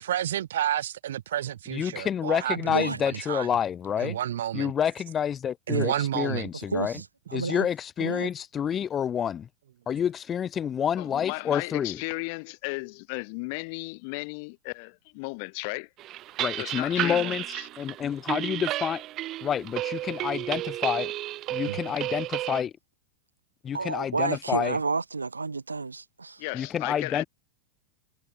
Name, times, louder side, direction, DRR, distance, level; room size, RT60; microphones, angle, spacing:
voice 1, 0.0-3.5 4.0-4.7 5.7-6.5 21.7-21.8, right 11 dB, 60° right, 2.8 m, -30 dB
voice 2, 1.7-4.2 4.5-7.0 7.3-9.5 9.9-12.0 16.4-17.4 17.8-19.0 19.4-21.1 21.5-22.7 23.6-24.8 26.5-27.2, left 8 dB, 25° left, 3.1 m, -28 dB
voice 3, 2.5-3.0 5.7-5.9 6.7-7.0 7.3-7.7 8.0-8.3 23.7-26.4, right 4 dB, 80° right, 2.6 m, -30 dB
voice 4, 11.0-15.9 16.6-17.7 26.4-27.2, left 32 dB, 45° left, 3.2 m, -35 dB
sound 1, 16.0-22.6, right 15 dB, 35° right, 1.0 m, -32 dB
figure-of-eight pair, 90°, 0 cm